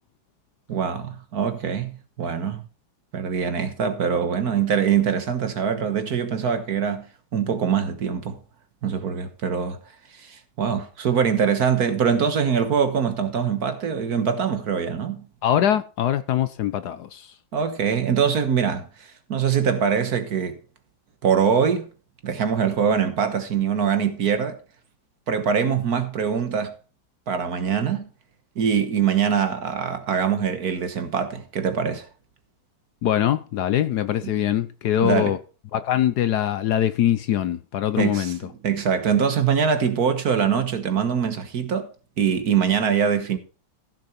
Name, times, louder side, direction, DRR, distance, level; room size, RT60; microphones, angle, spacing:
voice 1, 0.7-2.6 3.1-7.1 7.3-8.4 8.8-9.8 10.1-15.3 17.5-20.6 21.2-21.9 22.2-24.6 25.3-26.8 27.3-28.1 28.6-32.1 35.0-35.4 38.0-38.3 38.6-41.9 42.2-43.4, right 7 dB, 55° right, 1.6 m, -23 dB
voice 2, 15.4-17.3 33.0-35.4 35.7-38.4, left 11 dB, 65° left, 1.1 m, -23 dB
15.0 x 6.7 x 4.3 m
omnidirectional pair, 2.1 m